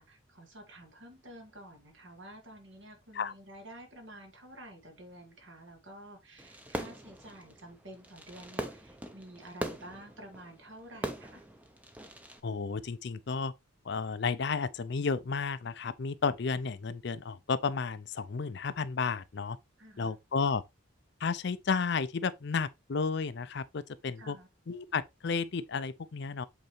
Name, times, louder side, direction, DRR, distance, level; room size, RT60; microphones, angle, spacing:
voice 1, 0.0-11.4 19.8-20.1 24.2-24.5, right 1 dB, 65° right, 2.1 m, -50 dB
Fireworks, 6.4-12.4, right 1 dB, 5° right, 0.7 m, -41 dB
voice 2, 12.4-13.5 13.8-19.6 20.0-20.6 21.2-24.4 24.7-26.5, left 5 dB, 55° left, 0.5 m, -32 dB
7.9 x 4.0 x 3.2 m
head